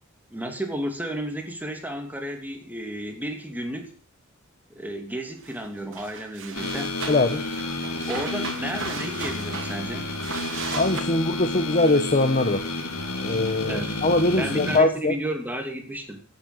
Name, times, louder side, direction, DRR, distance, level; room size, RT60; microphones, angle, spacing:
voice 1, 0.3-3.9 4.7-6.9 8.1-10.1 13.7-13.9 14.3-16.2, right 1 dB, 10° right, 4 dB, 2.9 m, -32 dB
sound 1, 5.4-5.6 5.9-11.0, right 5 dB, 60° right, 2.7 m, -36 dB
sound 2, 6.5-14.8, left 2 dB, 80° left, 3.6 m, -31 dB
voice 2, 7.1-7.4 10.7-12.7 13.2-15.1, left 2 dB, 35° left, 6 dB, 1.2 m, -22 dB
15.0 x 8.6 x 7.9 m, 0.39 s
head